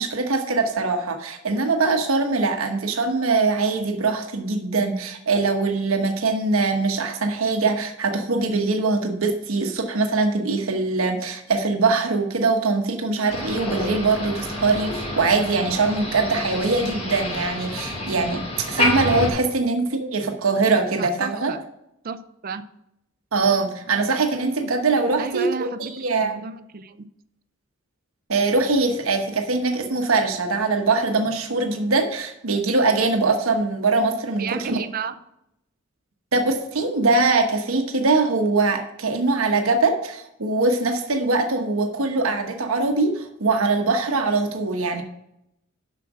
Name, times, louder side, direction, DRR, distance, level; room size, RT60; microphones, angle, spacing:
voice 1, 0.0-21.5 23.3-26.3 28.3-34.8 36.3-45.0, right 3 dB, 85° right, 5 dB, 1.1 m, -22 dB
Motor vehicle (road), 13.3-19.3, left 1 dB, 30° left, 2.3 m, -28 dB
voice 2, 21.0-21.6 22.0-22.6 25.2-27.1 34.4-35.2, right 5 dB, 45° right, 12 dB, 0.5 m, -32 dB
7.2 x 5.9 x 6.1 m, 0.81 s
head